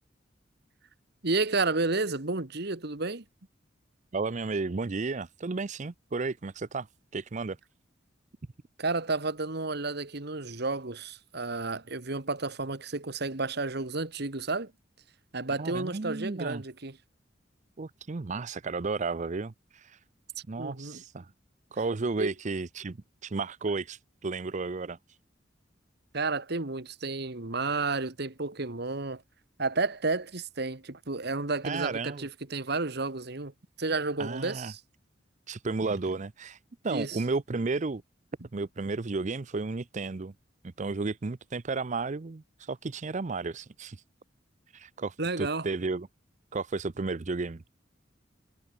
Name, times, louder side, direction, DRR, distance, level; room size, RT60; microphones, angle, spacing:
voice 1, 1.2-3.2 8.8-14.7 15.3-17.0 20.6-21.0 22.2-22.3 26.1-29.2 29.6-33.5 33.8-34.8 35.8-36.2 36.9-37.2 45.2-45.7, right 3 dB, 60° right, 1.8 m, -31 dB
voice 2, 4.1-6.9 7.1-7.6 15.6-16.6 17.8-20.0 20.5-21.3 21.7-23.0 23.2-25.2 31.6-32.2 34.2-34.7 35.5-38.0 38.5-40.3 40.8-44.0 44.7-46.1 46.5-47.6, right 3 dB, 40° right, 0.6 m, -33 dB
head